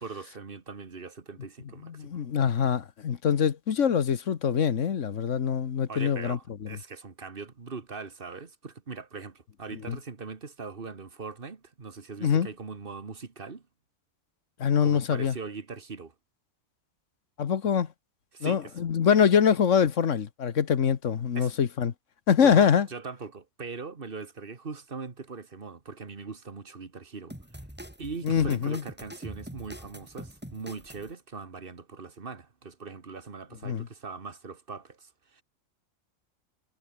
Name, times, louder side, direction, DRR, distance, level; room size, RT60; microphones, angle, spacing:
voice 1, 0.0-2.2 5.9-13.6 14.8-16.1 18.3-18.7 21.3-21.5 22.4-27.4 28.0-35.4, right 4 dB, 40° right, 1.9 m, -41 dB
voice 2, 1.8-6.7 9.9-10.0 12.2-12.5 14.6-15.3 17.4-17.9 18.4-21.9 22.3-22.9 28.2-28.8 33.6-33.9, left 7 dB, 65° left, 1.5 m, -24 dB
sound 1, 27.3-31.1, equal, 5° right, 4.4 m, -44 dB
omnidirectional pair, 1.4 m